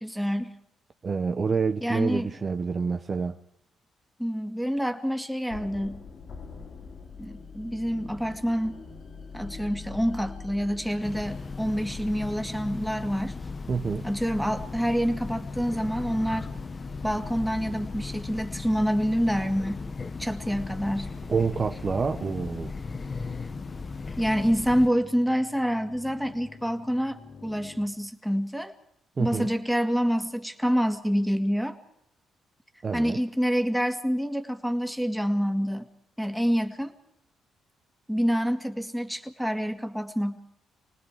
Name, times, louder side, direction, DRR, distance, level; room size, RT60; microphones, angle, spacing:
voice 1, 0.0-0.5 1.8-2.3 4.2-6.0 7.2-8.8 9.3-13.4 14.0-16.5 17.0-19.8 20.2-21.1 24.2-28.7 29.2-31.8 32.9-35.9 36.2-36.9 38.1-40.4, equal, ahead, 2.1 m, -27 dB
voice 2, 1.0-3.4 13.7-14.1 21.3-22.7 29.2-29.5 32.8-33.2, right 5 dB, 35° right, 0.8 m, -27 dB
sound 1, 5.5-14.4, left 4 dB, 60° left, 2.6 m, -44 dB
Train, 11.0-24.9, left 4 dB, 30° left, 0.8 m, -37 dB
sound 2, 14.5-27.9, left 4 dB, 85° left, 3.9 m, -48 dB
28.5 x 19.5 x 4.9 m
cardioid pair, 90°, 0 cm